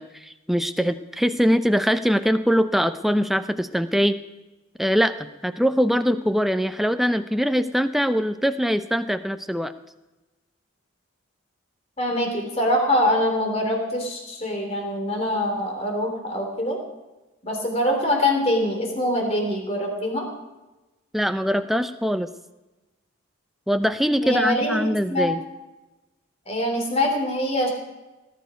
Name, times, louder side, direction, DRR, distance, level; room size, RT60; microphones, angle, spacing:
voice 1, 0.0-4.2 4.8-5.1 5.4-9.7 21.1-22.3 23.7-25.4, equal, ahead, 9 dB, 0.6 m, -22 dB
voice 2, 12.0-16.8 17.4-20.3 24.2-25.3 26.5-27.7, left 1 dB, 30° left, 3 dB, 3.3 m, -24 dB
18.5 x 11.5 x 5.2 m, 1.1 s
head